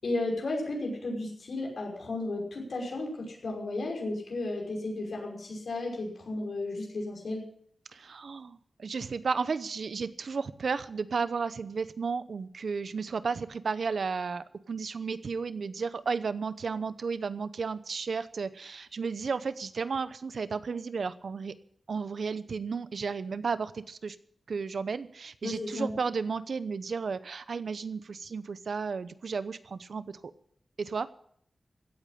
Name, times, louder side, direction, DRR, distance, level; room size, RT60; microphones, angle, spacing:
voice 1, 0.0-7.4 25.4-25.9, left 2 dB, 75° left, 0 dB, 5.6 m, -34 dB
voice 2, 7.9-21.5 21.9-24.2 24.5-30.2 30.8-31.1, right 5 dB, 75° right, 14 dB, 0.8 m, -33 dB
16.5 x 8.4 x 8.5 m, 0.66 s
wide cardioid pair, 80°, 0 cm